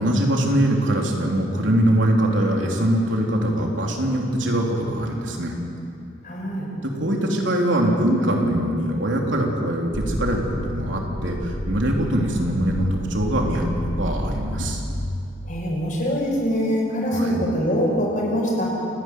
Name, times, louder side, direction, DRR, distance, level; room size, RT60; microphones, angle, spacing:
voice 1, 0.0-5.5 6.8-10.4 10.7-14.8 17.1-17.5, right 1 dB, 90° right, 0 dB, 3.3 m, -22 dB
voice 2, 6.2-6.7 15.5-18.8, equal, 45° left, -2 dB, 6.2 m, -23 dB
sound 1, 9.9-15.1, left 1 dB, 5° right, 1.3 m, -29 dB
29.5 x 11.0 x 9.4 m, 2.6 s
head